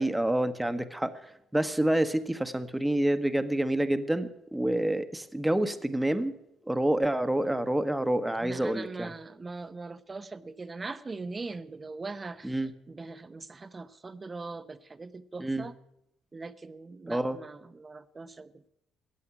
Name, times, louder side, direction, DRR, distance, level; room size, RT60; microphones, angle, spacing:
voice 1, 0.0-6.3 6.6-9.1 12.4-12.7 15.4-15.7 17.1-17.4, right 1 dB, 10° right, 11 dB, 1.2 m, -28 dB
voice 2, 8.4-15.7 16.3-18.7, right 3 dB, 30° right, 13 dB, 0.9 m, -41 dB
14.0 x 8.5 x 9.9 m, 0.82 s
supercardioid pair, 70°, 0 cm